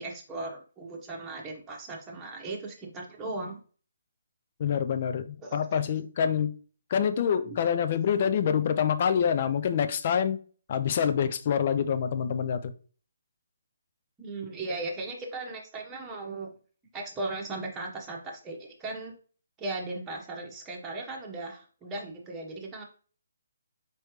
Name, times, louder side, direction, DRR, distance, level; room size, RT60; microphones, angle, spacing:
voice 1, 0.0-3.6 5.4-5.6 7.4-7.6 14.2-16.5 16.9-19.1 19.6-22.8, right 2 dB, 15° right, -2 dB, 1.1 m, -37 dB
voice 2, 4.6-6.5 6.9-10.4 10.7-12.7, left 8 dB, 40° left, 10 dB, 0.5 m, -26 dB
4.5 x 3.1 x 3.1 m, 0.40 s
figure-of-eight pair, 145°, 0 cm